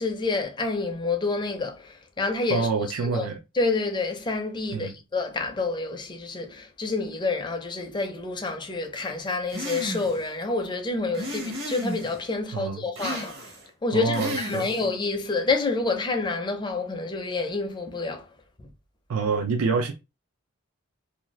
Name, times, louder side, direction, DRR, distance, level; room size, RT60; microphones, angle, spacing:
voice 1, 0.0-2.7 3.0-3.3 3.5-13.5 13.8-18.3 18.6-18.7, left 3 dB, 20° left, 0.5 m, -28 dB
voice 2, 2.5-3.4 4.7-4.9 12.5-12.8 13.9-14.7 19.1-19.9, right 4 dB, 80° right, 0.4 m, -26 dB
sound 1, 9.5-10.2 11.1-12.2 12.9-13.7 14.1-14.9, equal, 60° right, 0.9 m, -34 dB
2.6 x 2.3 x 3.0 m
head